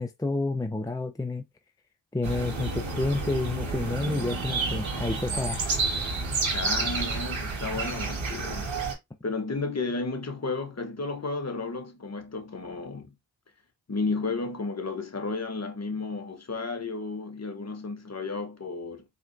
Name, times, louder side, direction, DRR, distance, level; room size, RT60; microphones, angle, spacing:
voice 1, 0.0-1.5 2.1-5.6, left 2 dB, 10° left, 0.5 m, -29 dB
sound 1, 2.2-8.9, right 3 dB, 85° right, 1.8 m, -30 dB
voice 2, 6.5-8.7 9.2-13.1 13.9-19.0, left 3 dB, 35° left, 1.0 m, -33 dB
4.3 x 3.3 x 2.6 m
cardioid pair, 55°, 46 cm